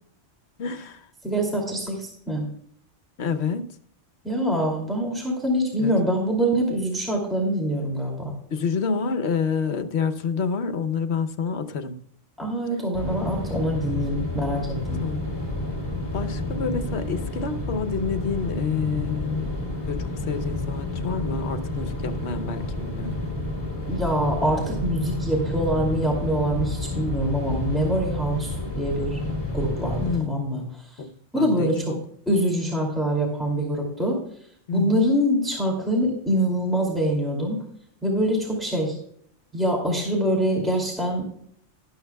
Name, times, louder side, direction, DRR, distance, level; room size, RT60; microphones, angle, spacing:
voice 1, 0.6-1.1 3.2-3.7 5.8-5.9 8.5-12.0 15.0-15.5 16.1-19.5 19.9-23.2 30.0-30.7 31.0-32.0 34.7-35.1, left 5 dB, 65° left, 1.1 m, -28 dB
voice 2, 1.2-2.5 4.2-8.3 12.4-15.0 23.9-29.2 29.5-30.6 31.3-32.0 32.3-34.2 34.7-37.6 38.0-39.0 39.5-41.3, equal, ahead, 2.5 m, -24 dB
sound 1, 12.9-30.2, left 2 dB, 20° left, 2.7 m, -30 dB
12.5 x 12.0 x 2.3 m
omnidirectional pair, 1.3 m